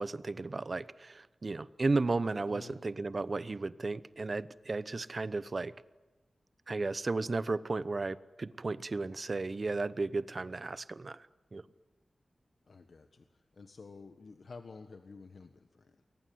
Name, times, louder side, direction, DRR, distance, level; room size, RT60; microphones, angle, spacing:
voice 1, 0.0-5.7 6.7-11.6, right 3 dB, 40° right, 16 dB, 0.9 m, -34 dB
voice 2, 2.5-2.8 12.7-13.2 13.5-16.1, left 4 dB, 60° left, 7 dB, 1.5 m, -51 dB
28.5 x 22.0 x 9.5 m, 1.1 s
wide cardioid pair, 115°, 0 cm